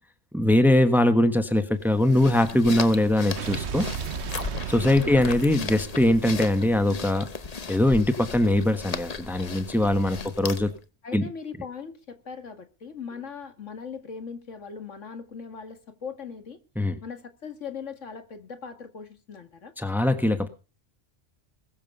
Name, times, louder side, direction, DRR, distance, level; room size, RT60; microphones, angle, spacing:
voice 1, 0.3-3.9 4.7-7.3 7.7-10.7 11.1-11.3 16.8-17.0 19.8-20.5, left 1 dB, ahead, 1.2 m, -22 dB
sound 1, 1.8-10.8, left 5 dB, 35° left, 0.9 m, -36 dB
Explosion, 3.4-7.7, right 7 dB, 65° right, 1.1 m, -35 dB
voice 2, 11.0-16.6 17.0-19.7, left 6 dB, 90° left, 2.3 m, -39 dB
21.0 x 7.4 x 5.5 m
omnidirectional pair, 1.2 m